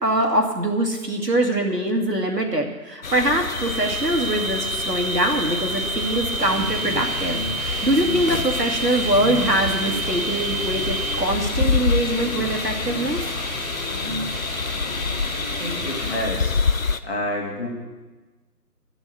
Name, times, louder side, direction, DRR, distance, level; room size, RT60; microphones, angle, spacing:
voice 1, 0.0-13.2, right 1 dB, 75° right, 2 dB, 2.3 m, -23 dB
sound 1, 3.0-17.0, left 4 dB, 55° left, 0.6 m, -27 dB
sound 2, 3.5-11.1, right 5 dB, 5° left, 1.9 m, -30 dB
sound 3, 6.4-16.2, equal, 25° right, 1.8 m, -33 dB
voice 2, 15.3-16.6 17.0-17.7, left 1 dB, 40° left, -2 dB, 3.0 m, -29 dB
12.0 x 7.1 x 8.8 m, 1.2 s
figure-of-eight pair, 165°, 49 cm